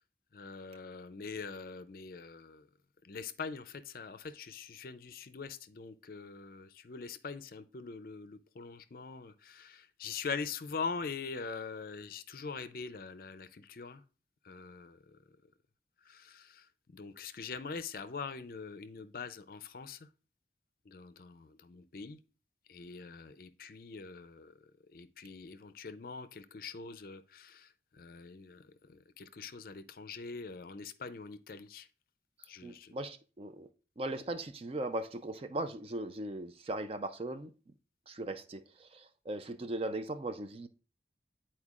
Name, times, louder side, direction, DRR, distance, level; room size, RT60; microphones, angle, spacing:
voice 1, 0.3-2.7 3.0-14.0 14.4-15.2 16.1-20.1 20.9-22.2 22.7-24.5 24.9-31.9 32.5-32.9, left 5 dB, 55° left, 0.5 m, -43 dB
voice 2, 32.6-33.7 34.0-37.5 38.1-40.7, right 2 dB, 35° right, 0.4 m, -38 dB
9.8 x 4.3 x 2.4 m
head